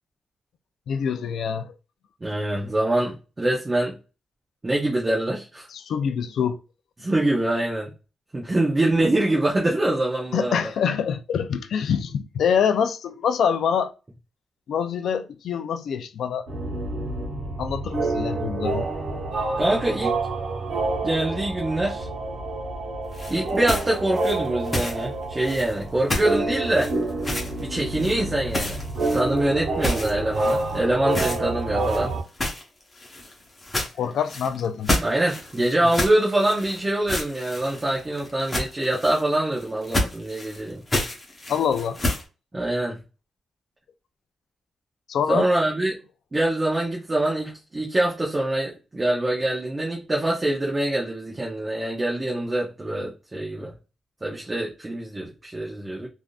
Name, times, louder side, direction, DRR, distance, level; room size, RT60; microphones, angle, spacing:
voice 1, 0.9-1.7 5.7-6.6 10.3-13.9 14.7-16.5 17.6-18.9 34.0-34.9 41.5-42.0 45.1-45.5, left 7 dB, 70° left, 0.4 m, -25 dB
voice 2, 2.2-3.9 4.6-5.7 7.0-7.9 8.3-10.7 19.6-20.2 21.0-22.1 23.3-26.9 27.6-32.1 35.0-40.8 42.5-43.0 45.3-46.0 46.3-53.7 54.2-56.1, right 1 dB, 20° right, 0.7 m, -24 dB
sound 1, 16.5-32.2, right 2 dB, 60° right, 1.1 m, -28 dB
sound 2, 23.1-25.0 25.4-25.8 26.1-26.4 26.7-27.6 28.0-28.2 28.5-29.4 29.8-30.8 31.1-31.4 31.8-42.2, left 1 dB, 20° left, 0.9 m, -30 dB
3.5 x 2.5 x 2.3 m
cardioid pair, 135°, 0 cm